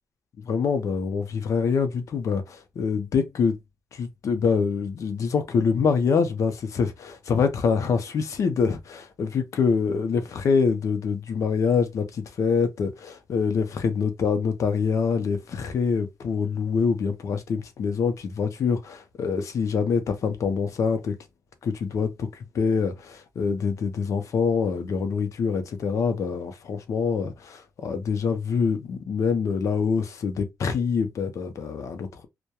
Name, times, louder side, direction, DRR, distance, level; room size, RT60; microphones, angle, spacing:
voice 1, 0.4-3.6 3.9-21.2 21.6-32.3, left 5 dB, 65° left, 0.5 m, -25 dB
2.2 x 2.1 x 2.8 m
cardioid pair, 110°, 6 cm